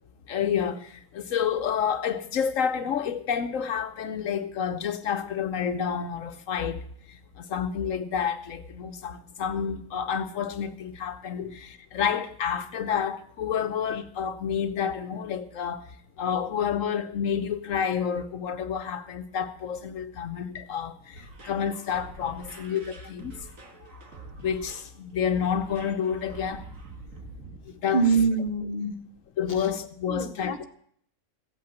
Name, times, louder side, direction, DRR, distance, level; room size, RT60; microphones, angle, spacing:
voice 1, 0.3-6.8 7.1-15.9 16.2-23.3 24.4-26.6 27.8-28.0 29.4-30.7, left 7 dB, 80° left, 1.2 m, -29 dB
sound 1, 21.1-27.6, right 3 dB, 90° right, 2.4 m, -46 dB
voice 2, 27.6-29.0 29.6-29.7 30.1-30.7, right 4 dB, 35° left, 1.5 m, -26 dB
15.5 x 8.7 x 7.7 m
omnidirectional pair, 1.3 m